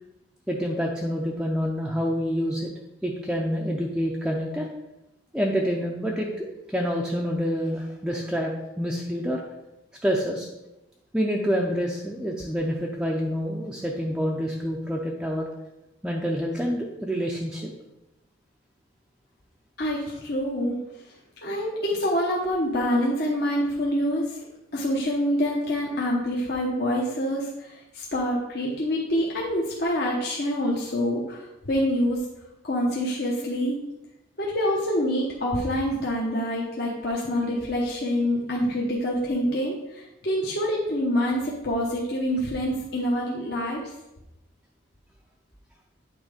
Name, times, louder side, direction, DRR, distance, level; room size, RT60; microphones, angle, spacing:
voice 1, 0.5-2.7 3.0-4.7 5.3-9.4 10.0-10.5 11.1-15.5 16.0-17.7, equal, 5° right, -2 dB, 0.5 m, -27 dB
voice 2, 19.8-20.8 21.4-24.4 24.7-32.2 32.6-33.8 34.4-43.8, equal, 55° left, -4 dB, 1.1 m, -26 dB
8.8 x 3.7 x 5.0 m, 0.92 s
head